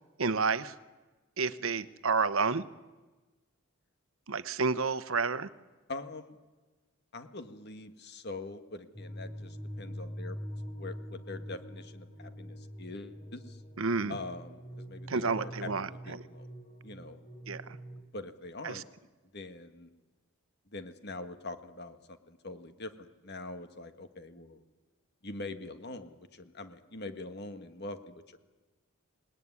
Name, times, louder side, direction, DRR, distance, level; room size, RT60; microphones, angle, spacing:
voice 1, 0.2-0.7 1.4-2.6 4.3-5.5 13.8-14.2 15.1-16.2 17.5-17.8 18.6-18.8, right 4 dB, 75° right, 15 dB, 1.0 m, -30 dB
voice 2, 5.9-6.4 7.1-10.4 10.8-13.6 14.1-16.5 16.8-17.2 18.1-18.8 19.3-19.9 20.7-22.0 22.3-24.6 25.2-28.4, left 2 dB, 50° left, 8 dB, 1.7 m, -43 dB
sound 1, 8.9-18.0, equal, 30° left, 3.3 m, -44 dB
27.0 x 19.5 x 9.8 m, 1.2 s
head